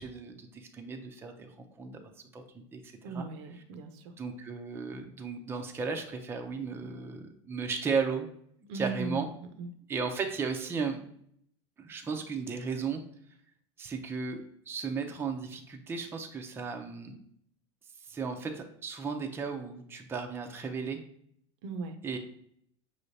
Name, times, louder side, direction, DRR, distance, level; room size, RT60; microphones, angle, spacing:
voice 1, 0.0-2.0 2.3-3.3 4.2-8.3 8.7-9.3 9.9-11.0 11.8-13.0 13.8-17.2 18.1-21.0 22.0-22.2, right 5 dB, 15° right, 3 dB, 0.5 m, -35 dB
voice 2, 3.0-4.1 8.7-9.3 9.6-9.7 21.6-22.0, right 4 dB, 70° right, 8 dB, 0.6 m, -37 dB
5.5 x 3.2 x 2.7 m, 0.67 s
supercardioid pair, 135°, 15 cm